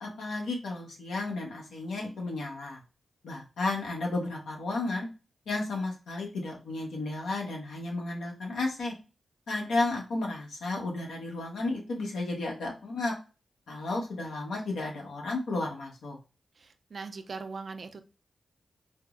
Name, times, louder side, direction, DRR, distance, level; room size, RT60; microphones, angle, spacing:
voice 1, 0.0-2.8 3.2-5.1 5.5-8.9 9.5-13.1 13.7-16.2, left 2 dB, 90° left, -1 dB, 1.0 m, -33 dB
voice 2, 16.6-18.0, right 4 dB, 60° right, 8 dB, 0.4 m, -40 dB
4.6 x 2.0 x 2.4 m, 0.32 s
cardioid pair, 55°, 0 cm